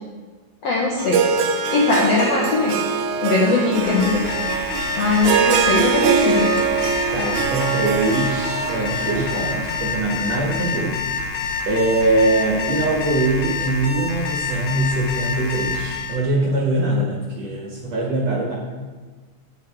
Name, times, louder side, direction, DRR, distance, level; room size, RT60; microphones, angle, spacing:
voice 1, 0.6-1.2 1.7-2.8 3.2-4.2 5.0-6.6, left 3 dB, 70° left, -3 dB, 1.5 m, -20 dB
Harp, 1.0-10.0, right 6 dB, 80° right, 2.4 m, -23 dB
Alarm, 3.7-16.2, left 5 dB, 90° left, 2.7 m, -28 dB
voice 2, 7.1-11.0 11.7-18.6, right 2 dB, 60° right, -2 dB, 2.0 m, -22 dB
8.2 x 7.8 x 4.6 m, 1.4 s
omnidirectional pair, 4.3 m